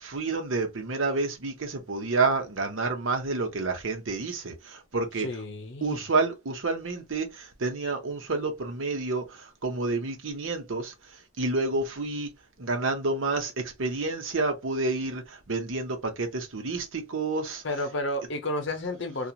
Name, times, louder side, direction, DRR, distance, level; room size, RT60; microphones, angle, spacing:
voice 1, 0.0-4.5 4.9-5.3 5.8-7.3 7.6-9.2 9.6-10.9 11.4-12.3 12.6-15.2 15.5-17.6, right 3 dB, 70° right, 0.9 m, -29 dB
voice 2, 5.2-6.0 17.6-19.3, left 1 dB, 60° left, 0.7 m, -31 dB
2.9 x 2.4 x 2.3 m
head